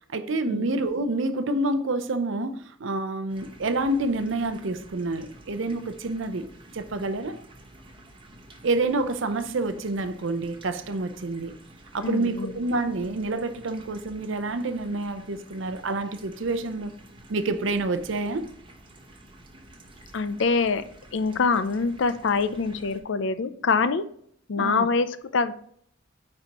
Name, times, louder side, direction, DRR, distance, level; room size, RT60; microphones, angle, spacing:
voice 1, 0.1-6.5 6.7-7.4 8.6-11.5 11.9-17.0 17.3-18.5 24.6-24.9, right 2 dB, 65° right, 0.6 m, -28 dB
sound 1, 3.3-23.0, right 1 dB, 25° right, 0.9 m, -50 dB
voice 2, 12.0-12.6 20.1-20.8 21.1-24.0 24.5-25.5, left 4 dB, 65° left, 0.5 m, -25 dB
9.5 x 4.3 x 2.9 m
head